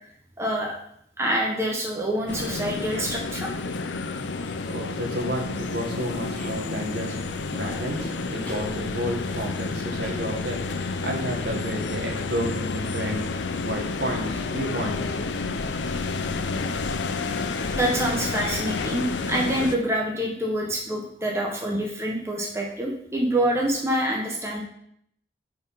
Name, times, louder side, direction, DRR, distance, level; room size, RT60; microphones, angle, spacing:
voice 1, 0.4-0.7 1.2-3.5 17.7-24.6, right 1 dB, 15° right, -2 dB, 1.0 m, -26 dB
sound 1, 2.3-19.8, left 3 dB, 85° left, 0.6 m, -30 dB
voice 2, 4.7-13.2 13.6-15.1, equal, 70° right, 1 dB, 1.5 m, -31 dB
sound 2, 6.4-6.6 7.9-8.1 8.4-8.7 10.0-10.7, left 1 dB, 5° left, 1.1 m, -40 dB
6.5 x 4.7 x 5.5 m, 0.70 s
head